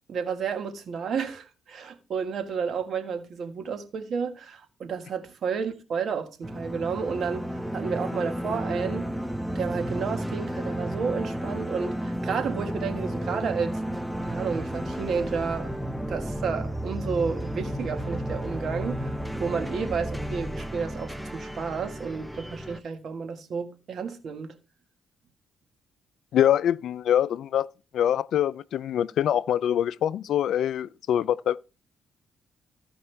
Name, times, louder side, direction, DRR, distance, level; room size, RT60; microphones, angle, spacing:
voice 1, 0.1-7.4 7.7-9.1 9.5-13.8 14.2-15.8 16.1-19.1 19.4-24.5, right 6 dB, 60° right, 1.6 m, -31 dB
sound 1, 6.4-22.8, equal, 5° right, 0.7 m, -32 dB
voice 2, 26.3-27.7 27.9-31.6, left 10 dB, 70° left, 0.4 m, -24 dB
15.0 x 5.4 x 3.4 m
cardioid pair, 90°, 0 cm